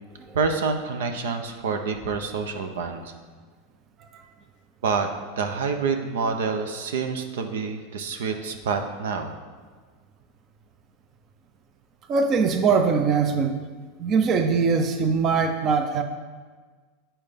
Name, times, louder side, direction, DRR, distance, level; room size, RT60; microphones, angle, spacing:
voice 1, 0.3-3.1 4.8-5.1 5.4-9.3, right 5 dB, 85° right, 6 dB, 0.8 m, -27 dB
voice 2, 12.1-13.5 14.0-16.0, right 5 dB, 35° right, 7 dB, 0.6 m, -21 dB
8.9 x 4.4 x 5.2 m, 1.5 s
supercardioid pair, 130°, 0 cm